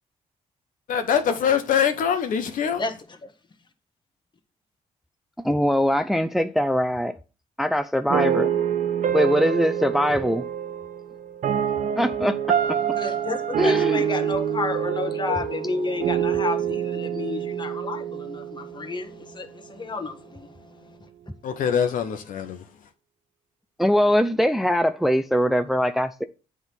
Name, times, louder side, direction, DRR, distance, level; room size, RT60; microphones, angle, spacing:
voice 1, 0.9-2.8 21.4-22.6, left 7 dB, 75° left, 1.1 m, -23 dB
voice 2, 5.4-7.2 7.6-8.5 9.1-10.4 12.0-12.8 13.6-14.0 23.8-26.2, equal, ahead, 0.5 m, -22 dB
sound 1, 8.1-19.2, right 9 dB, 70° right, 0.9 m, -26 dB
voice 3, 12.9-21.0, left 3 dB, 35° left, 1.4 m, -31 dB
7.9 x 3.6 x 6.0 m
cardioid pair, 75°, 14 cm